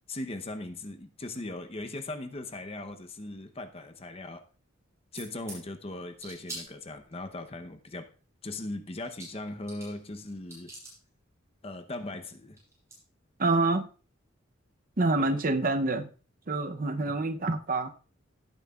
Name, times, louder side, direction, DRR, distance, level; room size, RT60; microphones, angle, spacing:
voice 1, 0.1-4.4 5.1-8.1 8.4-10.7 11.6-12.6 15.2-15.4, left 2 dB, 30° left, 0.8 m, -39 dB
sound 1, 5.2-5.6 6.2-7.2 8.7-8.8 9.0-10.0 10.3-11.0 12.2-12.3 12.6-13.0, right 2 dB, 15° right, 6.6 m, -44 dB
voice 2, 13.4-13.9 15.0-16.1 16.5-17.9, right 2 dB, 45° right, 0.7 m, -27 dB
17.0 x 8.9 x 2.4 m
head